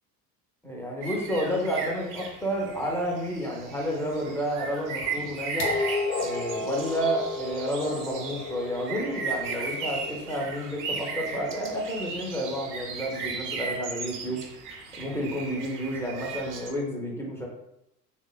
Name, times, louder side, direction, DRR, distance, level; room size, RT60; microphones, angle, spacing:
voice 1, 0.6-5.7 6.2-14.4 15.0-17.5, equal, 5° left, -2 dB, 0.4 m, -30 dB
sound 1, 1.0-16.7, right 5 dB, 40° right, 0.5 m, -36 dB
sound 2, 5.6-11.5 12.6-12.7, left 3 dB, 50° left, 0.6 m, -33 dB
3.1 x 2.1 x 2.2 m, 0.83 s
figure-of-eight pair, 65°, 49 cm